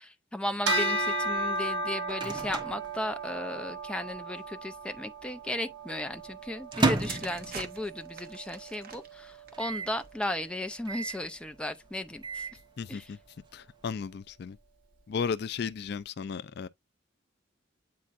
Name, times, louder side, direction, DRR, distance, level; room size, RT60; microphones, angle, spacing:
voice 1, 0.0-12.5 12.9-13.1, left 1 dB, 5° left, 0.5 m, -35 dB
Bell, 0.7-10.3, right 1 dB, 80° right, 1.6 m, -35 dB
Microwave oven, 1.6-3.8 4.0-4.1 4.3-4.9 5.4-8.1 8.5-8.6 8.8-8.9 9.5-10.0 10.9-11.3 11.9-12.6, right 3 dB, 25° right, 1.1 m, -33 dB
sound 1, 6.6-10.5 11.3-11.5, right 5 dB, 50° right, 1.1 m, -46 dB
voice 2, 12.8-13.2 13.5-14.6 15.1-16.7, left 6 dB, 60° left, 0.4 m, -34 dB
8.6 x 4.3 x 2.5 m
head